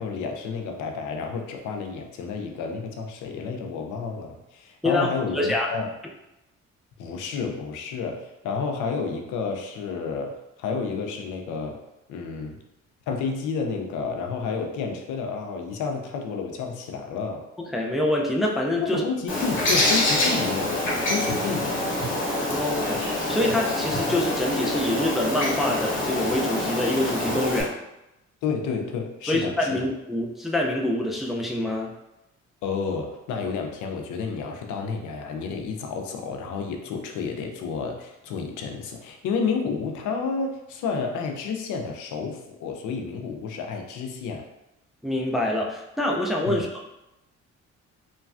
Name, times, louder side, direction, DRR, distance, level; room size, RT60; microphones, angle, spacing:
voice 1, 0.0-5.9 7.0-11.8 12.1-12.6 13.1-17.5 18.8-21.8 28.4-29.9 32.6-44.5 46.5-46.6, left 5 dB, 85° left, 3 dB, 0.5 m, -30 dB
voice 2, 5.3-5.7 17.6-19.0 22.5-23.0 23.3-27.7 29.2-31.9 45.0-47.0, left 1 dB, ahead, -1 dB, 0.3 m, -26 dB
Bird, 19.3-27.6, left 1 dB, 40° left, 1.0 m, -26 dB
3.1 x 2.2 x 2.4 m, 0.91 s
cardioid pair, 90°, 30 cm